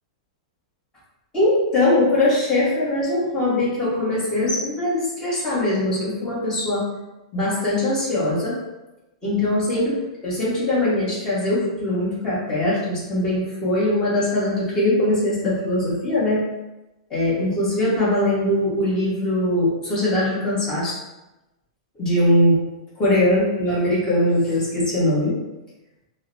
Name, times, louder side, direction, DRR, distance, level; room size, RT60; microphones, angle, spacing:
voice 1, 1.3-6.9 7.3-8.6 9.2-16.4 17.1-21.0 22.0-22.6 23.0-25.4, left 1 dB, 20° left, -8 dB, 1.4 m, -21 dB
3.7 x 2.1 x 2.7 m, 1.0 s
hypercardioid pair, 145°, 3 cm